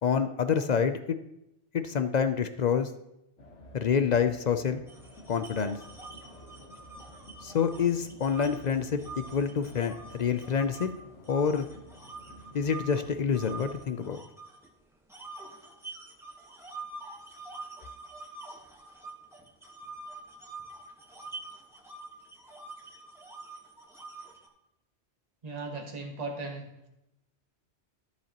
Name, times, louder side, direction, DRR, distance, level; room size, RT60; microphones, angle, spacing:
voice 1, 0.0-1.2 1.7-2.9 3.7-4.9 5.3-5.8 7.4-10.9 11.3-11.7 12.5-14.2, left 6 dB, 55° left, 10 dB, 0.5 m, -27 dB
sound 1, 3.4-13.9, equal, 85° left, 1.6 m, -51 dB
sound 2, 4.9-10.9 11.3-14.7 15.1-24.5, right 3 dB, ahead, 1.2 m, -46 dB
voice 2, 25.4-26.9, right 3 dB, 35° right, 2 dB, 1.3 m, -37 dB
13.0 x 7.1 x 2.9 m, 0.85 s
omnidirectional pair, 1.2 m